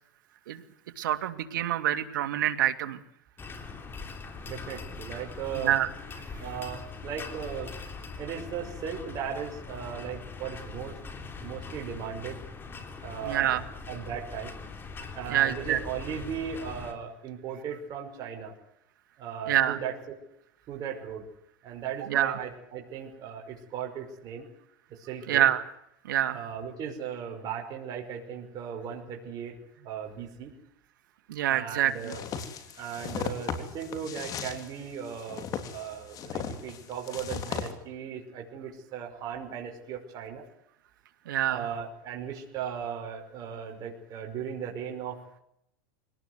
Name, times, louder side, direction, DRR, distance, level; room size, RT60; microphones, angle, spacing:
voice 1, 1.0-3.0 5.6-5.9 13.2-13.6 15.3-15.8 19.5-19.8 22.1-22.4 25.3-25.7 26.0-26.4 31.3-32.1 41.3-41.7, right 12 dB, 80° right, 8 dB, 2.5 m, -26 dB
sound 1, 3.4-16.9, left 4 dB, 20° left, 3.6 m, -42 dB
voice 2, 4.5-5.8 6.4-7.7 8.2-11.0 11.4-12.4 13.0-13.6 13.9-14.5 15.1-18.5 19.2-19.9 20.7-21.3 21.6-24.5 24.9-25.5 26.3-30.5 31.5-32.2 32.8-40.4 41.5-45.4, right 8 dB, 40° right, 1 dB, 5.4 m, -37 dB
sound 2, 32.0-37.7, left 7 dB, 35° left, 3.5 m, -37 dB
24.5 x 18.5 x 8.1 m, 0.77 s
supercardioid pair, 125°, 11 cm